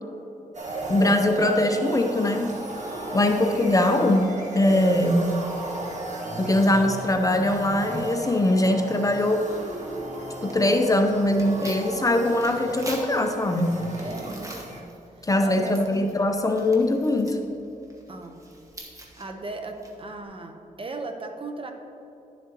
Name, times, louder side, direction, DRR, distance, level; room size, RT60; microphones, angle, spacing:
sound 1, 0.5-14.8, right 2 dB, 55° right, 1.5 m, -35 dB
voice 1, 0.9-2.5 3.1-5.4 6.4-9.5 10.4-13.8 15.2-17.4, left 1 dB, 25° left, 5 dB, 0.6 m, -22 dB
Tearing, 9.5-20.2, right 1 dB, 20° right, 1.3 m, -46 dB
voice 2, 14.0-14.8 15.4-15.8 18.1-18.3 19.2-21.7, right 3 dB, 40° right, 4 dB, 0.9 m, -37 dB
11.0 x 7.3 x 2.9 m, 2.9 s
cardioid pair, 90°, 15 cm